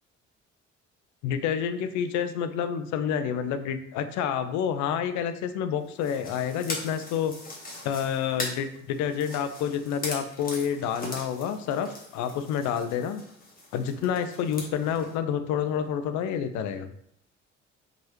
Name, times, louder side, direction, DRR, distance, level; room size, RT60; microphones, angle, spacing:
voice 1, 1.2-7.3 7.8-13.2 13.7-16.9, left 8 dB, 50° left, 10 dB, 0.5 m, -28 dB
sound 1, 5.9-15.2, left 2 dB, 25° left, 1.3 m, -40 dB
4.5 x 2.9 x 2.9 m, 0.71 s
figure-of-eight pair, 45°, 37 cm